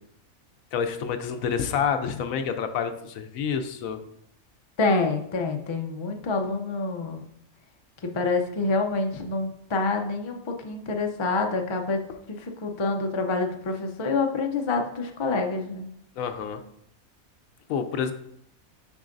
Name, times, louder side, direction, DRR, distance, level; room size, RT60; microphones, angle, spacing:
voice 1, 0.7-4.0 16.2-16.6 17.7-18.1, left 7 dB, 80° left, 8 dB, 1.0 m, -28 dB
voice 2, 4.8-7.2 8.0-12.0 12.3-15.8, left 3 dB, 50° left, 3 dB, 0.3 m, -27 dB
7.1 x 5.4 x 2.5 m, 0.73 s
omnidirectional pair, 1.4 m